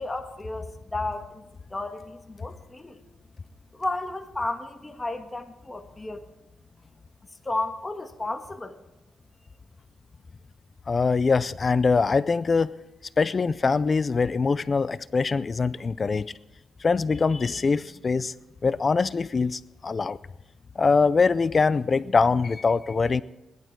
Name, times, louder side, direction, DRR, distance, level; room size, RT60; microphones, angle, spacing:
voice 1, 0.0-1.4 1.7-3.0 3.7-6.2 7.4-8.8, left 2 dB, 15° left, 6 dB, 1.5 m, -33 dB
voice 2, 10.9-12.7 13.2-16.3 16.8-18.3 18.6-20.2 20.8-23.2, left 4 dB, 35° left, 18 dB, 0.4 m, -23 dB
19.0 x 12.0 x 4.6 m, 0.98 s
cardioid pair, 105°, 0 cm